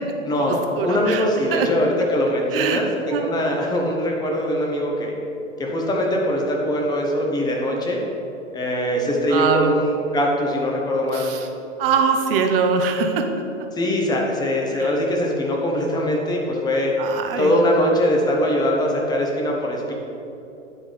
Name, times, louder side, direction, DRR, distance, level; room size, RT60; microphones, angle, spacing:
voice 1, 0.2-5.1 5.6-8.0 8.5-11.3 13.7-16.9 17.4-19.9, left 1 dB, 10° left, -1 dB, 0.8 m, -22 dB
voice 2, 0.8-1.2 1.5-1.7 2.5-2.8 3.1-3.3 9.3-9.7 11.1-11.5 11.8-13.2 14.7-14.9 17.0-17.5, right 6 dB, 50° right, 5 dB, 0.7 m, -22 dB
9.8 x 3.6 x 3.6 m, 2.9 s
figure-of-eight pair, 100°, 38 cm